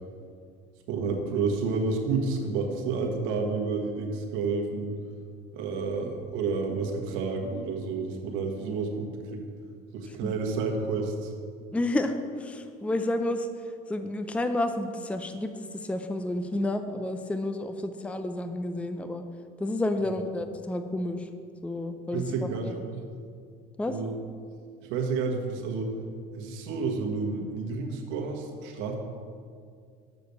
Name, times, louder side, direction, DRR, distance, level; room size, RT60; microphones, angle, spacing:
voice 1, 0.9-5.0 5.5-9.4 9.9-11.3 22.1-22.7 23.9-24.1 24.9-25.9 26.3-29.0, right 4 dB, 75° right, 1 dB, 1.5 m, -30 dB
voice 2, 11.7-19.3 19.6-21.3 21.6-22.8 23.8-24.0, left 1 dB, 5° left, 8 dB, 0.5 m, -31 dB
6.8 x 6.4 x 6.9 m, 2.2 s
supercardioid pair, 95°, 20 cm